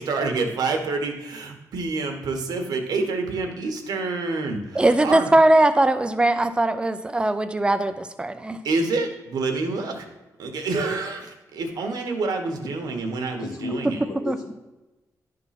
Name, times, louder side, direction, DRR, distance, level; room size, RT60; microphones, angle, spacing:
voice 1, 0.0-5.3 8.6-10.1 10.4-14.0, right 3 dB, 85° right, 4 dB, 1.3 m, -27 dB
voice 2, 4.7-8.6 14.3-14.4, right 1 dB, 15° right, 10 dB, 0.5 m, -20 dB
voice 3, 13.4-14.5, left 2 dB, 65° left, 3 dB, 1.5 m, -33 dB
11.0 x 3.9 x 5.8 m, 1.1 s
wide cardioid pair, 150°, 7 cm